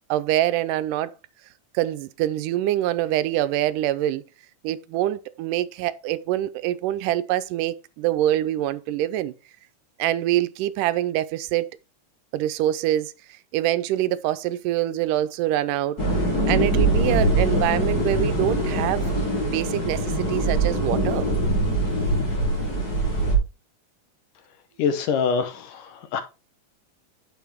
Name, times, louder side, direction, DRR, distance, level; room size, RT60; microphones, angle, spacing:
voice 1, 0.1-1.1 1.7-4.2 4.6-9.3 10.0-11.7 12.3-13.1 13.5-16.0 16.5-19.1 19.3-21.3, right 13 dB, 85° right, 2.2 m, -25 dB
sound 1, 16.0-23.4, right 1 dB, 30° left, 3.3 m, -23 dB
voice 2, 24.8-26.2, left 6 dB, 80° left, 2.9 m, -25 dB
9.4 x 6.9 x 3.5 m
omnidirectional pair, 3.7 m